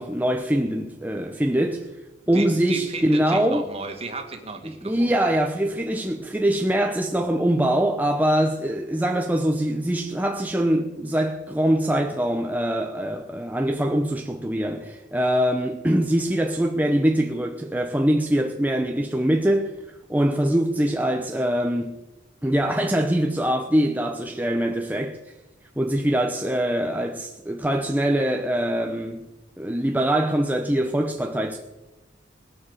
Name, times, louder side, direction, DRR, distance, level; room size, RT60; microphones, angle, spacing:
voice 1, 0.0-1.9 2.3-3.7 4.6-19.8 20.1-22.0 22.4-25.2 25.8-29.3 29.6-31.6, right 1 dB, 10° right, 0.8 m, -23 dB
voice 2, 2.3-5.3, right 3 dB, 35° right, 2.2 m, -34 dB
20.5 x 9.3 x 7.2 m
head